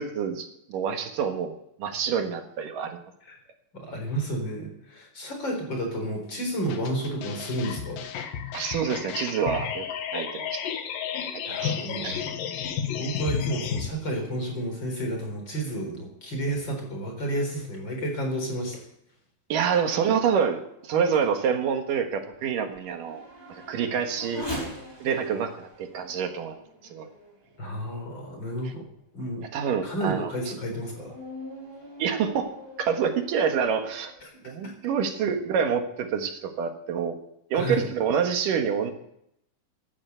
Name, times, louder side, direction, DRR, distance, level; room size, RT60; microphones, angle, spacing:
voice 1, 0.0-3.0 8.5-9.9 10.1-10.7 11.6-12.2 19.5-24.5 25.0-26.6 26.9-27.1 29.5-30.3 32.0-32.5 32.8-34.1 34.4-37.2 37.5-38.9, right 7 dB, 75° right, 5 dB, 3.1 m, -27 dB
voice 2, 3.7-8.1 11.4-12.4 12.9-18.8 27.6-28.9 29.1-29.4 29.8-31.1 34.2-34.3 34.6-34.7 37.5-37.9, right 1 dB, 35° left, 2 dB, 4.6 m, -31 dB
sound 1, 6.7-13.9, left 8 dB, 85° left, 3.1 m, -32 dB
Race car auto racing / Accelerating revving vroom, 20.6-28.1 28.7-28.8 29.4-34.2, equal, 5° left, 4.4 m, -43 dB
15.5 x 11.0 x 8.1 m, 0.75 s
omnidirectional pair, 3.9 m